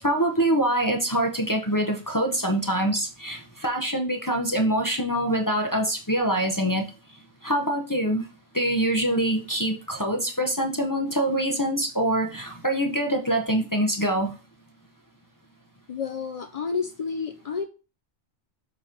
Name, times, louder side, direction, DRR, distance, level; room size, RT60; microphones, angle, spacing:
voice 1, 0.0-6.8 7.4-8.3 8.5-14.3, right 1 dB, 20° left, 1 dB, 0.7 m, -24 dB
voice 2, 15.9-17.6, left 5 dB, 55° left, 7 dB, 0.4 m, -30 dB
7.0 x 3.0 x 5.0 m, 0.33 s
omnidirectional pair, 1.2 m